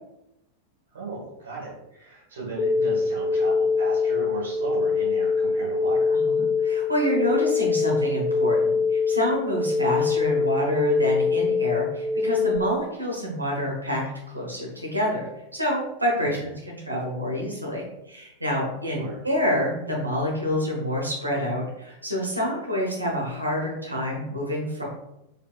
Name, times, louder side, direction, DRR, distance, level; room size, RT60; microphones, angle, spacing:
voice 1, 0.9-6.2 16.2-16.5 18.8-19.2, right 3 dB, 65° right, -4 dB, 1.3 m, -36 dB
sound 1, 2.6-12.6, left 4 dB, 30° left, 0.4 m, -23 dB
voice 2, 6.1-14.0 14.3-15.3 15.5-24.9, equal, 85° right, -2 dB, 1.1 m, -27 dB
4.4 x 3.4 x 2.3 m, 0.87 s
figure-of-eight pair, 90°, 0 cm